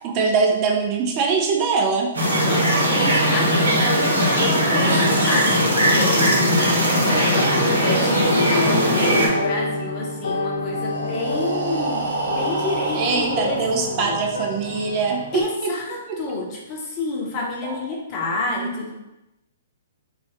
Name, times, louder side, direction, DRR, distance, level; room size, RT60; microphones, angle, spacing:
voice 1, 0.0-2.1 4.5-4.6 12.9-15.7 17.6-17.8 18.5-18.7, right 4 dB, 35° right, 1 dB, 0.4 m, -22 dB
sound 1, 2.1-9.3, equal, 80° right, 1.0 m, -19 dB
voice 2, 2.4-14.2 15.3-18.9, left 2 dB, 35° left, -2 dB, 0.8 m, -29 dB
sound 2, 7.3-15.4, left 2 dB, 70° left, 0.5 m, -30 dB
Breathing, 10.6-14.5, right 3 dB, 65° right, 0.7 m, -29 dB
3.1 x 2.6 x 2.9 m, 0.96 s
figure-of-eight pair, 120°, 0 cm